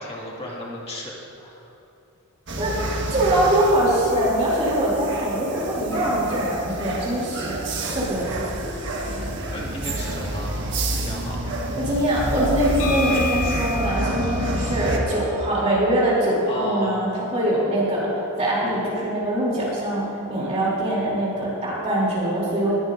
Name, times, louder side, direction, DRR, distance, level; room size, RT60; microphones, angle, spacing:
voice 1, 0.0-1.7 7.7-8.2 9.5-10.6 10.9-11.4 16.5-17.0, equal, 25° left, -4 dB, 2.1 m, -34 dB
sound 1, 2.5-15.0, right 1 dB, 55° right, 1.4 m, -29 dB
voice 2, 3.1-8.3 11.7-18.1 18.4-22.8, right 1 dB, 30° right, -6 dB, 3.0 m, -23 dB
sound 2, 12.8-16.6, left 4 dB, 65° left, 1.5 m, -33 dB
20.0 x 11.5 x 2.6 m, 2.9 s
head